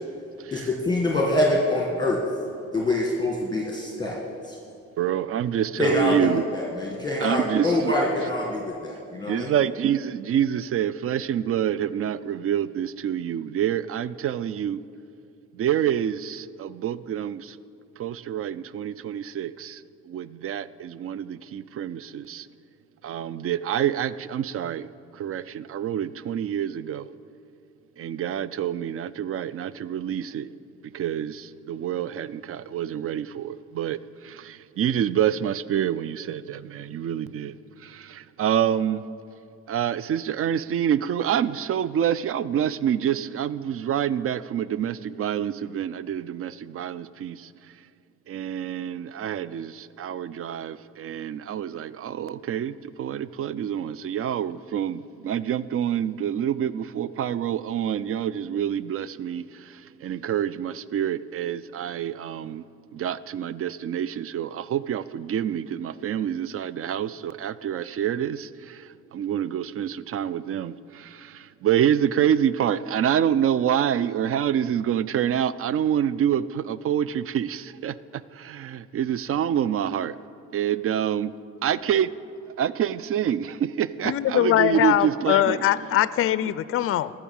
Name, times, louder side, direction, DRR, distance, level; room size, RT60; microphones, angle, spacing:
voice 1, 0.5-2.2 2.7-4.2 4.5-4.6 5.8-9.5, left 1 dB, 15° left, 1.6 m, -25 dB
voice 2, 5.0-6.4 7.2-7.9 9.3-14.8 15.5-17.6 18.0-22.5 23.0-27.1 28.0-30.5 30.9-37.5 37.8-39.0 39.7-47.5 48.3-62.6 62.9-78.0 78.3-80.2 80.5-81.3 81.6-82.1 82.6-85.6 86.4-86.5, right 9 dB, 50° right, 0.4 m, -27 dB
voice 3, 84.0-87.1, left 13 dB, 50° left, 0.4 m, -22 dB
13.5 x 6.1 x 7.1 m
cardioid pair, 90°, 30 cm